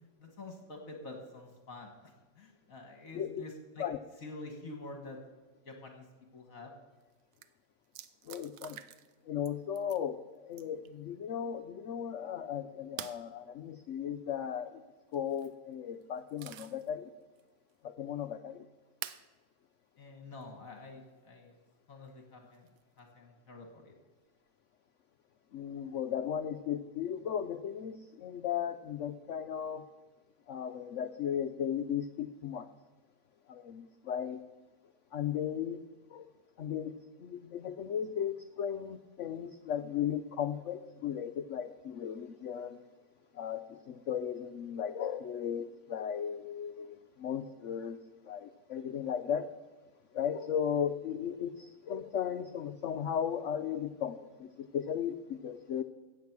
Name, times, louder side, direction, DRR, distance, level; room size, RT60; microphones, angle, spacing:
voice 1, 0.2-3.9 4.2-5.2 5.7-6.1 6.3-6.7 20.0-21.6 21.9-22.7 23.0-24.0, left 2 dB, 50° left, 3 dB, 1.9 m, -47 dB
sound 1, 7.0-7.1 7.3-7.5 7.9-9.2 9.5-10.0 10.5-10.9 13.0-13.2 15.1-15.5 16.0-16.9 17.4-17.5 19.0-19.3 20.4-20.5 22.5-23.0, right 12 dB, 85° right, 1.3 m, -46 dB
voice 2, 8.3-8.8 9.3-14.8 15.1-17.1 17.8-18.7 25.5-29.8 30.5-32.7 33.5-34.4 35.1-35.8 36.1-36.3 36.6-42.8 43.3-48.0 48.2-49.5 50.1-55.8, left 8 dB, 75° left, 9 dB, 0.7 m, -36 dB
15.0 x 8.6 x 6.0 m, 1.2 s
omnidirectional pair, 1.9 m